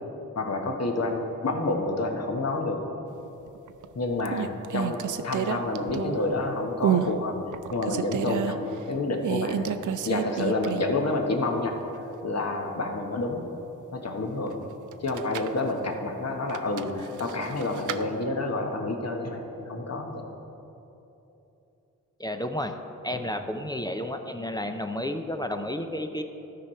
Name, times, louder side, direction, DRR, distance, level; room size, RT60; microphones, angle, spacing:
voice 1, 0.3-2.8 3.9-7.4 7.7-9.8 10.0-11.8 12.2-13.5 13.9-14.6 15.0-20.2 23.1-23.3, left 2 dB, 50° left, 3 dB, 1.2 m, -29 dB
sound 1, 3.5-3.9 4.2-6.4 6.8-7.1 7.5-8.5 9.2-11.0 11.3-11.4 14.9-15.6 16.5-18.0, right 9 dB, 60° right, 0.5 m, -29 dB
voice 2, 22.2-22.8 23.0-26.2, left 1 dB, 10° left, 6 dB, 0.6 m, -31 dB
13.0 x 4.8 x 4.4 m, 3.0 s
cardioid pair, 45°, 34 cm